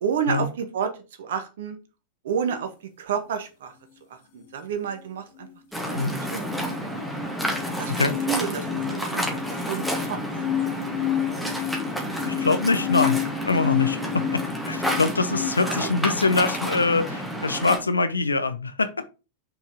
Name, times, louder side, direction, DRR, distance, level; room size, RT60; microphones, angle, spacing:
voice 1, 0.0-0.9 1.2-1.8 2.2-2.7 3.0-3.7 4.3-5.5 5.9-6.5 7.8-7.9 8.3-10.2 15.8-15.9, right 7 dB, 60° right, 7 dB, 1.6 m, -29 dB
Waves surf, 5.7-17.8, equal, ahead, 2.3 m, -30 dB
sound 1, 5.8-15.5, left 11 dB, 55° left, 1.7 m, -30 dB
voice 2, 12.2-13.2 13.5-14.0 14.3-19.1, left 3 dB, 75° left, 12 dB, 0.8 m, -24 dB
6.3 x 5.5 x 4.8 m, 0.31 s
figure-of-eight pair, 90°, 0 cm